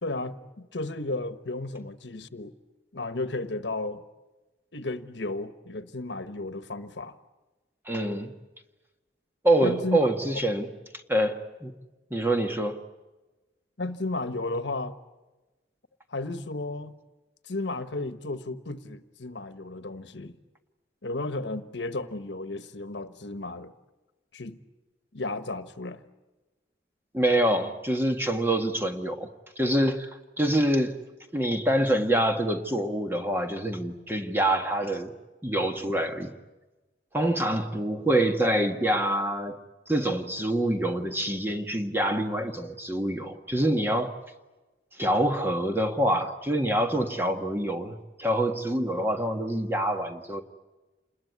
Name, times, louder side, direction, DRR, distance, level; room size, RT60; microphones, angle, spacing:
voice 1, 0.0-2.5 2.9-4.0 4.7-7.1 9.6-10.0 13.8-15.0 16.1-16.9 17.4-20.4 21.0-23.7 24.3-24.6 25.1-26.0, left 2 dB, 75° left, 1.3 m, -33 dB
voice 2, 7.8-8.3 9.4-10.7 11.1-11.7 12.1-12.8 27.1-29.3 29.6-31.0 31.3-35.1 35.4-36.3 37.1-39.6 39.9-44.2 45.0-50.4, right 1 dB, 10° right, 1.6 m, -26 dB
28.5 x 21.0 x 9.5 m
head